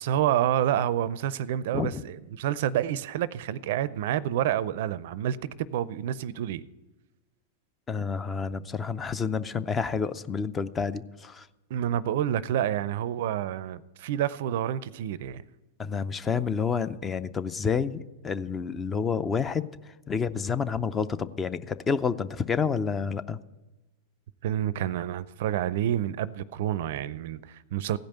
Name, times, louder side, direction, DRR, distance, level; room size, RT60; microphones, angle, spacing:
voice 1, 0.0-5.4 5.7-6.6 11.7-15.4 24.4-28.0, right 11 dB, 60° right, 0.5 m, -28 dB
voice 2, 7.9-11.5 15.8-19.7 20.1-23.4, left 6 dB, 20° left, 0.5 m, -29 dB
16.0 x 5.3 x 9.0 m
hypercardioid pair, 110°, 0 cm